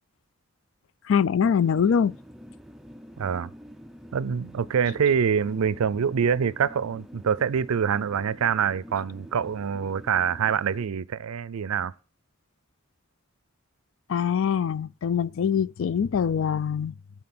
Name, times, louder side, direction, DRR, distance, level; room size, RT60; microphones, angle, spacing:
voice 1, 1.1-2.2 14.1-16.9, left 7 dB, 65° left, 0.4 m, -23 dB
sound 1, 1.4-10.9, equal, ahead, 0.4 m, -46 dB
voice 2, 3.2-3.5 4.1-11.9, right 7 dB, 90° right, 0.4 m, -25 dB
12.0 x 4.7 x 5.9 m
head